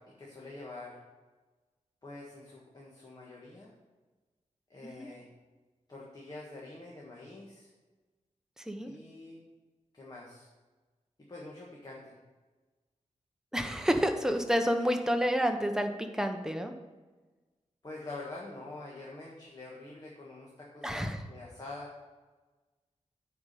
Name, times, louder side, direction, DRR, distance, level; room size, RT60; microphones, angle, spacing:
voice 1, 0.2-1.0 2.0-3.7 4.7-5.3 5.9-7.7 8.9-9.4 9.9-10.5 11.3-12.1 17.8-21.9, left 2 dB, 35° left, -4 dB, 1.7 m, -46 dB
voice 2, 13.5-16.7 20.8-21.2, equal, 5° right, 5 dB, 0.9 m, -29 dB
9.5 x 4.9 x 6.8 m, 1.2 s
wide cardioid pair, 135°, 12 cm